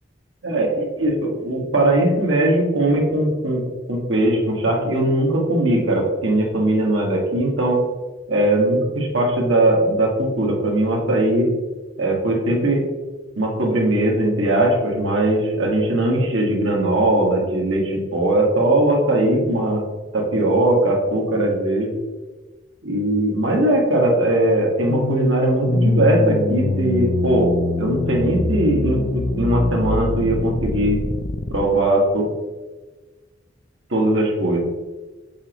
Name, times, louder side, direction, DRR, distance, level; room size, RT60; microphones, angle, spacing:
voice 1, 0.4-3.6 3.9-7.8 8.3-11.5 12.0-12.8 13.4-19.8 20.1-21.9 22.8-27.5 27.8-31.0 31.5-32.2 33.9-34.6, right 1 dB, 90° right, -1 dB, 1.5 m, -19 dB
sound 1, 24.9-31.6, left 2 dB, 40° left, 0.4 m, -23 dB
7.2 x 5.1 x 3.0 m, 1.2 s
head